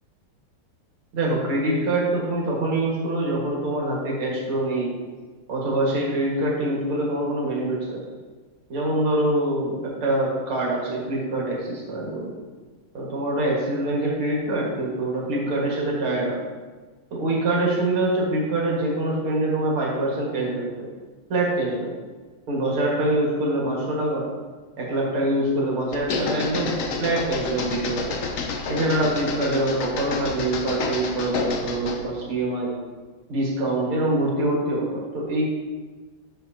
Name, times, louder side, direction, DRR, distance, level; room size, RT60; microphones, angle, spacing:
voice 1, 1.1-4.9 5.5-8.0 8.7-12.3 12.9-16.4 17.1-20.9 21.3-21.9 22.5-24.3 24.8-28.2 28.7-32.8 33.3-35.5, right 1 dB, 75° right, -4 dB, 2.7 m, -25 dB
sound 1, 25.9-32.1, left 4 dB, 75° left, 0.7 m, -29 dB
9.7 x 6.9 x 2.9 m, 1.4 s
omnidirectional pair, 2.4 m